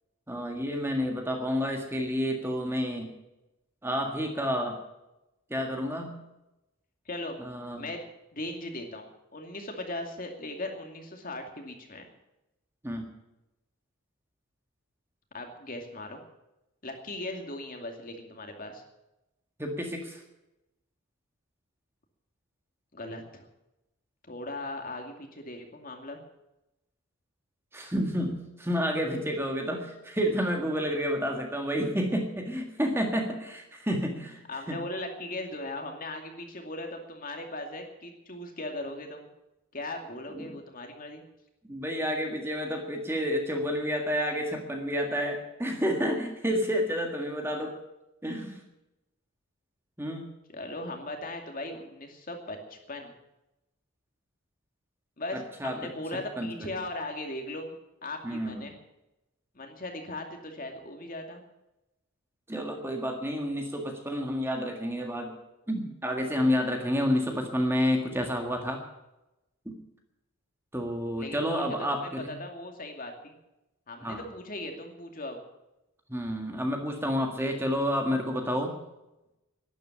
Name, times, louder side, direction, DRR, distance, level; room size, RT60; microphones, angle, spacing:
voice 1, 0.3-3.1 3.8-4.8 5.5-6.2 7.4-7.8 12.8-13.1 19.6-20.2 27.7-34.8 40.3-40.6 41.7-47.7 48.2-48.6 50.0-50.2 55.3-55.9 56.4-56.7 58.2-58.6 62.5-65.3 65.7-68.8 69.6-69.7 70.7-72.3 74.0-74.2 76.1-78.7, equal, 10° right, 3 dB, 1.7 m, -30 dB
voice 2, 7.1-7.4 7.8-8.0 8.3-12.1 15.3-16.2 16.8-18.8 22.9-23.4 24.3-26.2 34.5-39.3 39.7-41.2 50.5-53.1 55.2-57.7 58.0-58.7 59.5-61.4 71.2-72.1 72.4-73.3 73.9-75.4, left 2 dB, 40° left, 3 dB, 2.4 m, -38 dB
12.0 x 11.0 x 10.0 m, 0.95 s
head